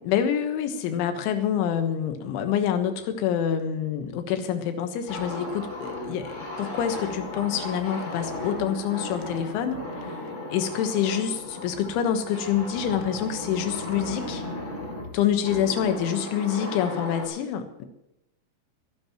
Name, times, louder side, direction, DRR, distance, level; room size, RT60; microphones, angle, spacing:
voice 1, 0.0-14.4 15.1-17.8, left 9 dB, 75° left, 7 dB, 3.4 m, -27 dB
sound 1, 5.1-17.3, left 1 dB, 25° left, 1.5 m, -35 dB
23.5 x 11.5 x 3.0 m, 0.86 s
omnidirectional pair, 5.9 m